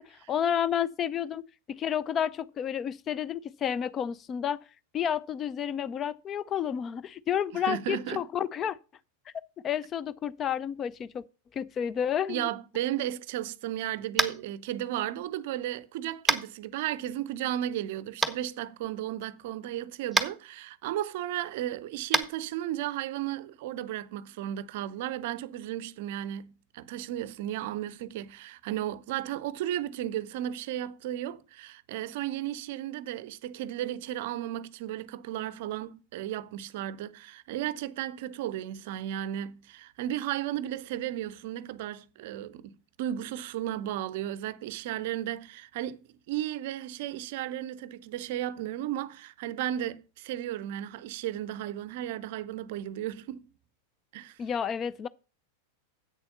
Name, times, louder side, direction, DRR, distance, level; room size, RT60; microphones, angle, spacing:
voice 1, 0.0-1.4 1.8-4.6 4.9-8.8 9.6-11.2 11.5-12.5 54.4-55.1, left 9 dB, 25° left, 0.4 m, -30 dB
voice 2, 7.5-8.2 12.3-46.0 46.3-53.5 54.1-54.4, right 12 dB, 50° right, 0.6 m, -34 dB
Tap, 14.1-14.4 16.3-16.4 18.2-18.3 20.1-20.3 22.1-22.2, right 4 dB, 5° right, 0.9 m, -24 dB
8.2 x 6.9 x 5.4 m
figure-of-eight pair, 90°, 0 cm